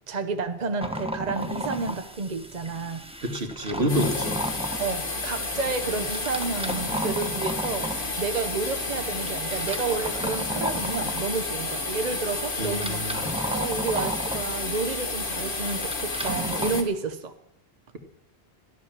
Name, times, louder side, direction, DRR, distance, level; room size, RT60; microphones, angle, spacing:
voice 1, 0.1-3.1 4.8-7.9 8.2-13.2 13.5-17.3, right 4 dB, 45° right, 7 dB, 1.0 m, -30 dB
sound 1, 0.8-16.8, equal, 5° right, 1.1 m, -35 dB
voice 2, 3.2-4.4 12.6-13.2, equal, 75° right, 4 dB, 2.2 m, -27 dB
sound 2, 3.9-16.8, left 3 dB, 55° left, 1.9 m, -31 dB
14.5 x 11.5 x 7.4 m, 0.77 s
omnidirectional pair, 1.1 m